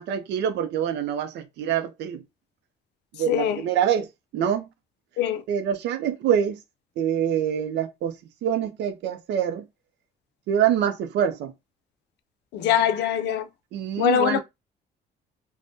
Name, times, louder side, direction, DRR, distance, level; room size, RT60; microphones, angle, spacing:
voice 1, 0.0-2.2 3.1-4.7 5.5-6.6 7.0-9.7 10.5-11.5 13.7-14.4, right 9 dB, 85° right, 0.5 m, -25 dB
voice 2, 3.3-3.6 5.2-5.4 12.5-13.5 14.0-14.4, left 10 dB, 80° left, 0.5 m, -23 dB
3.5 x 2.1 x 2.6 m
cardioid pair, 150°, 17 cm